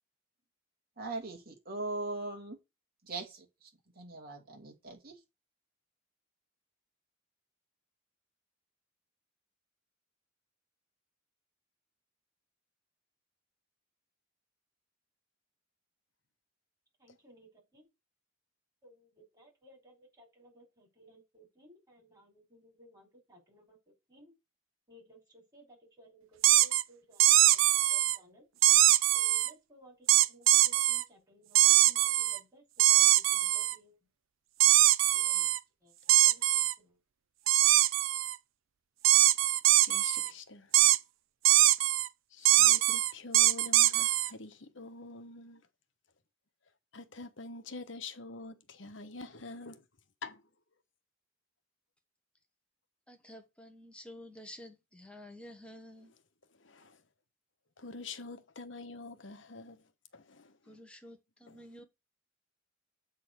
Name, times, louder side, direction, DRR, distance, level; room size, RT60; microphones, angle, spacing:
voice 1, 1.0-2.6 3.0-3.7 4.0-5.2, right 2 dB, 50° right, 2.7 m, -40 dB
voice 2, 17.0-17.9 18.8-24.3 24.9-28.5 29.1-34.0 35.1-35.5 35.8-37.0, right 1 dB, 20° right, 4.6 m, -59 dB
sound 1, 26.4-26.8 27.2-28.2 28.6-29.5 30.1-31.0 31.5-32.4 32.8-33.7 34.6-35.6 36.1-36.7 37.5-38.3 39.0-40.3 40.7-41.0 41.4-42.1 42.4-44.3, right 14 dB, 85° right, 0.5 m, -23 dB
voice 3, 39.8-40.7 42.3-45.6 46.9-49.8 50.2-50.4 56.6-57.0 57.8-59.8 60.1-60.8 61.5-61.7, left 3 dB, 70° left, 1.2 m, -46 dB
voice 4, 53.1-56.1 60.7-61.8, left 1 dB, 5° left, 1.3 m, -50 dB
8.3 x 4.1 x 6.6 m
head